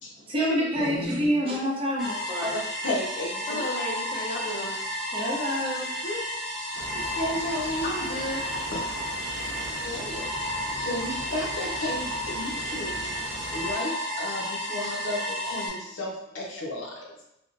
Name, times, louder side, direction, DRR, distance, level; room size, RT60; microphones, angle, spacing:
voice 1, 0.3-2.6 5.1-5.9, equal, 30° right, -4 dB, 0.7 m, -27 dB
sound 1, 2.0-15.7, equal, ahead, 0.9 m, -32 dB
voice 2, 2.4-3.7 6.0-6.2 6.9-8.1 8.7-8.8 9.8-17.2, left 1 dB, 85° left, -1 dB, 0.7 m, -34 dB
voice 3, 3.5-4.7 7.8-8.4 16.6-17.1, left 1 dB, 45° left, -1 dB, 0.6 m, -34 dB
sound 2, 6.7-13.7, right 2 dB, 70° right, 0.4 m, -41 dB
3.5 x 2.0 x 2.5 m, 0.81 s
head